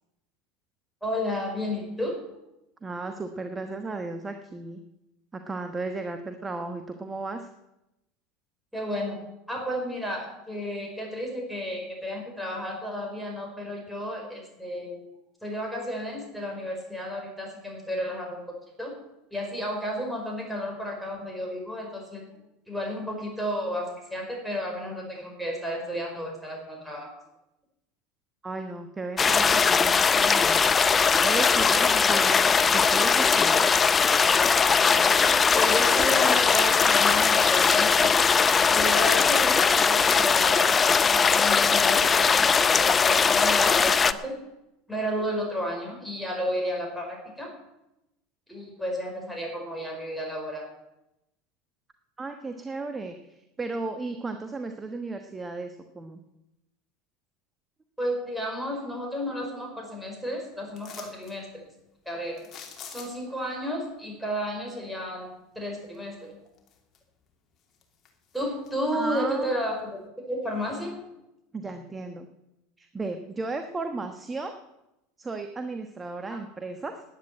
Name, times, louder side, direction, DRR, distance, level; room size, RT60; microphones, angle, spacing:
voice 1, 1.0-2.2 8.7-9.2 9.5-15.0 15.4-18.4 18.8-18.9 19.3-22.3 22.7-27.1 35.5-38.1 38.7-44.4 44.9-47.5 48.5-50.7 58.0-61.6 62.0-62.4 62.9-66.3 68.3-69.9 70.3-71.0 76.3-76.4, equal, ahead, 0 dB, 4.9 m, -32 dB
voice 2, 2.8-4.8 5.3-7.5 28.4-30.7 31.2-33.8 52.2-56.2 68.9-69.6 71.5-72.3 72.8-74.5 75.2-77.0, right 3 dB, 20° right, 7 dB, 1.2 m, -34 dB
sound 1, 29.2-44.1, left 5 dB, 25° left, 0.6 m, -20 dB
sound 2, 60.8-61.4 62.4-63.4 65.9-66.0 66.5-67.2 67.6-68.7 69.2-69.3, left 7 dB, 40° left, 2.8 m, -45 dB
10.5 x 9.3 x 8.9 m, 0.90 s
hypercardioid pair, 95°, 0 cm